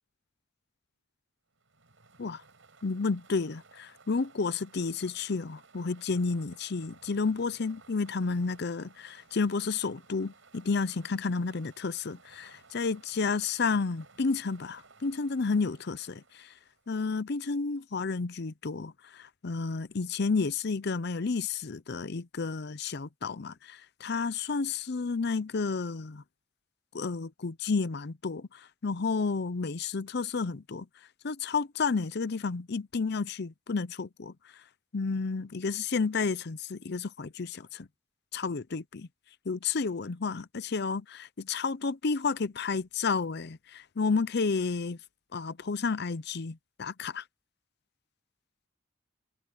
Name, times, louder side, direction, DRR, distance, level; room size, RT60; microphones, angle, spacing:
sound 1, 1.6-17.0, right 4 dB, 80° right, 5.2 m, -58 dB
voice 1, 2.8-16.5 16.9-26.2 26.9-30.9 31.2-34.3 34.9-37.9 38.3-39.1 39.5-45.0 45.3-47.2, left 4 dB, 55° left, 0.6 m, -31 dB
head